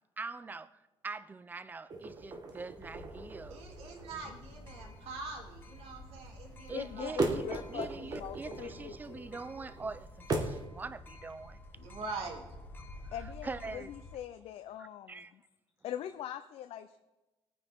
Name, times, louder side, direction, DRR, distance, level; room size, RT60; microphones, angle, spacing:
voice 1, 0.2-0.7 1.0-3.6 4.1-4.2 6.7-11.6 12.8-12.9 13.2-13.9 14.8-15.3, right 4 dB, 15° right, 0.4 m, -43 dB
sound 1, 1.9-10.7, right 3 dB, 40° right, 1.5 m, -39 dB
sound 2, 2.7-14.2, left 2 dB, 20° left, 1.1 m, -51 dB
voice 2, 3.5-7.2 11.7-12.4, right 3 dB, 70° right, 2.9 m, -43 dB
voice 3, 6.7-9.3 13.1-15.4 15.8-17.0, left 10 dB, 70° left, 0.6 m, -42 dB
20.0 x 9.3 x 3.6 m
cardioid pair, 160°, 10 cm